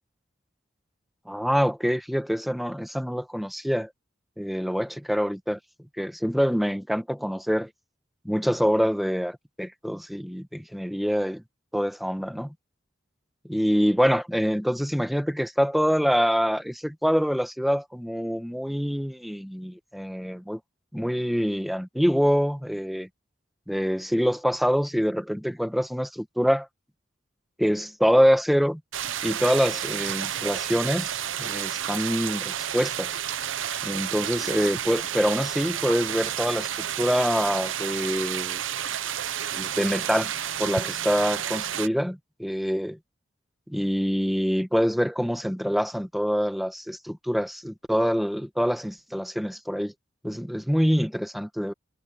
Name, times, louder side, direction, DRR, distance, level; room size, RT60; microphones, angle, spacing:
voice 1, 1.3-3.9 4.4-5.6 6.0-7.7 8.2-11.4 11.7-12.5 13.5-20.6 20.9-23.1 23.7-26.7 27.6-28.8 29.2-33.2 33.8-38.6 39.5-40.3 40.6-43.0 43.7-49.9 50.2-51.7, equal, ahead, 1.2 m, -25 dB
sound 1, 28.9-41.9, right 10 dB, 85° right, 0.7 m, -31 dB
head